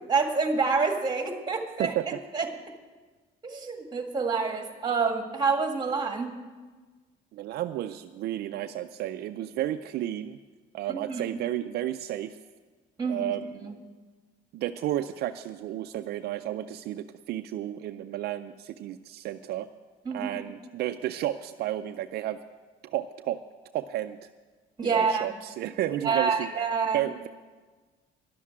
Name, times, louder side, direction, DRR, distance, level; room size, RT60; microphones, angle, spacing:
voice 1, 0.1-2.0 2.3-2.5 3.4-6.4 10.9-11.4 13.0-13.3 13.6-13.7 20.1-20.3 24.8-25.3 26.0-27.0, right 5 dB, 25° right, 4 dB, 1.8 m, -27 dB
voice 2, 7.3-10.4 10.7-12.4 13.1-13.5 14.5-19.7 20.1-22.4 22.8-23.4 23.7-24.3 24.8-26.5 26.9-27.3, right 13 dB, 70° right, 8 dB, 0.5 m, -32 dB
11.0 x 7.3 x 9.6 m, 1.4 s
cardioid pair, 110°, 17 cm